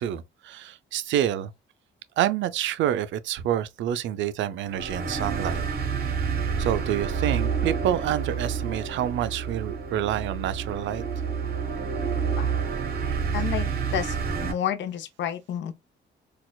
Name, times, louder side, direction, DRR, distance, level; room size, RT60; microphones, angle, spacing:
voice 1, 0.0-1.5 2.2-5.6 6.6-11.0 13.1-13.2, right 11 dB, 70° right, 0.4 m, -28 dB
sound 1, 4.7-14.5, right 6 dB, 50° right, 1.0 m, -29 dB
voice 2, 13.3-15.7, left 10 dB, 65° left, 0.6 m, -30 dB
4.1 x 2.3 x 2.2 m
cardioid pair, 90°, 20 cm